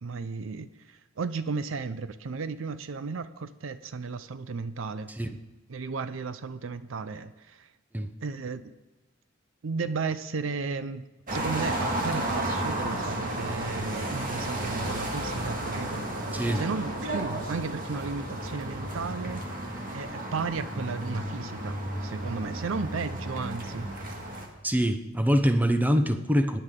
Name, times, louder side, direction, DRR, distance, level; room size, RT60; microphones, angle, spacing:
voice 1, 0.0-5.1 5.7-7.7 8.2-8.7 9.6-11.0 11.3-16.0 16.5-19.4 19.9-23.9, right 4 dB, 75° right, 13 dB, 0.5 m, -34 dB
sound 1, 11.3-24.5, right 1 dB, 45° right, 1.8 m, -33 dB
voice 2, 24.6-26.6, equal, 10° right, 8 dB, 0.7 m, -24 dB
17.0 x 10.0 x 3.7 m, 1.1 s
head